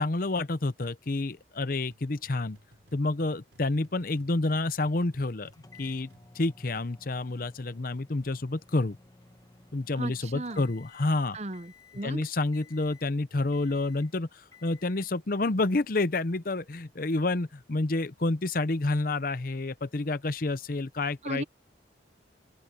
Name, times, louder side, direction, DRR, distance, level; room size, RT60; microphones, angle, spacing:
voice 1, 0.0-2.6 2.9-5.5 5.8-6.1 6.3-9.0 9.7-11.4 12.0-21.4, left 2 dB, 50° left, 0.7 m, -29 dB
sound 1, 1.9-7.0, equal, 85° right, 4.9 m, -61 dB
sound 2, 5.5-11.2 11.5-12.1 12.5-13.2 13.5-14.1 14.5-15.1, left 3 dB, 20° left, 1.4 m, -56 dB
voice 2, 10.0-10.7 11.3-12.2 21.2-21.4, right 2 dB, 35° right, 0.8 m, -36 dB
open air
head